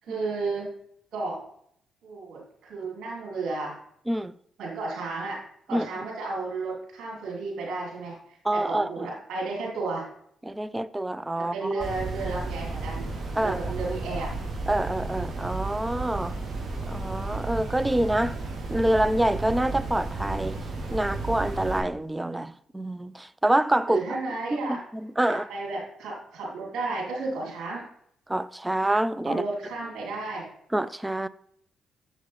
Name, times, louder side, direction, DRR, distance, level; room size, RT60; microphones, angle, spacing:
voice 1, 0.0-0.7 1.1-1.4 2.0-3.8 4.6-5.4 5.7-10.1 11.4-13.1 13.4-14.3 23.9-24.8 25.3-27.8 29.3-30.5, right 3 dB, 65° right, 3.1 m, -33 dB
voice 2, 8.4-9.1 10.4-11.9 13.3-13.6 14.7-16.4 16.8-18.4 18.7-20.6 20.9-24.0 24.5-25.5 28.3-29.4 30.7-31.3, right 1 dB, 15° right, 0.4 m, -26 dB
sound 1, 11.8-21.8, right 3 dB, 30° right, 2.9 m, -33 dB
7.2 x 6.6 x 3.2 m
hypercardioid pair, 45°, 0 cm